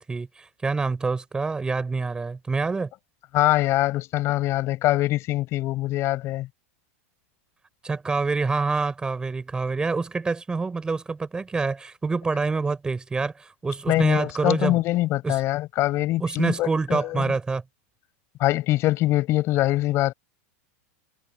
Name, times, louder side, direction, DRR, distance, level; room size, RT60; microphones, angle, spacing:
voice 1, 0.0-2.9 7.8-14.8 15.2-15.4 16.2-17.6, right 4 dB, 10° right, 4.7 m, -26 dB
voice 2, 3.3-6.5 13.9-17.3 18.4-20.1, left 16 dB, 35° left, 6.5 m, -23 dB
supercardioid pair, 145°, 7 cm